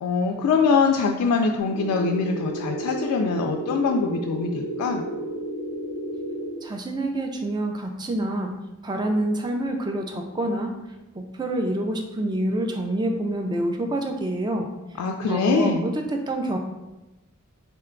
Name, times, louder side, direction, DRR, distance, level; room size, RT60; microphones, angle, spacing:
voice 1, 0.0-5.0 15.0-15.9, left 5 dB, 90° left, 4 dB, 0.3 m, -23 dB
sound 1, 1.6-6.6, right 1 dB, 65° right, 0.9 m, -32 dB
voice 2, 6.6-10.7 11.2-14.7 15.2-16.6, right 1 dB, 20° right, 4 dB, 0.3 m, -27 dB
3.8 x 2.2 x 3.6 m, 1.0 s
head